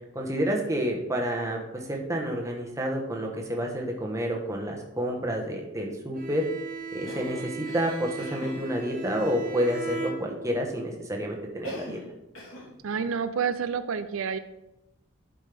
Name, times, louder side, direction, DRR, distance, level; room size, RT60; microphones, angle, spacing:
voice 1, 0.1-6.4 6.9-12.0, equal, 15° right, 0 dB, 1.2 m, -29 dB
Bowed string instrument, 6.1-10.8, right 3 dB, 40° right, 1.0 m, -38 dB
Cough, 7.0-8.6 11.6-12.1 12.3-12.7, equal, 80° left, 3.1 m, -41 dB
voice 2, 12.8-14.4, right 6 dB, 90° right, 11 dB, 0.5 m, -29 dB
11.5 x 5.2 x 3.5 m, 0.96 s
head